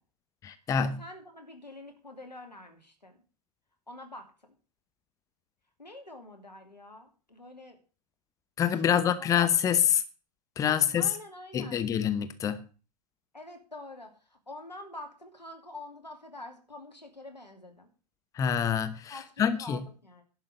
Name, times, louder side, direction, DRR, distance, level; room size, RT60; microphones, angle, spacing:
voice 1, 0.4-1.0 8.6-10.0 10.6-11.1 11.5-12.6 18.3-19.8, left 8 dB, 15° left, 0.8 m, -26 dB
voice 2, 1.0-3.2 3.9-4.3 5.8-7.8 8.7-9.3 10.6-11.9 13.3-17.9 19.1-20.2, left 2 dB, 85° left, 2.8 m, -46 dB
11.0 x 5.9 x 7.9 m
figure-of-eight pair, 105°, 21 cm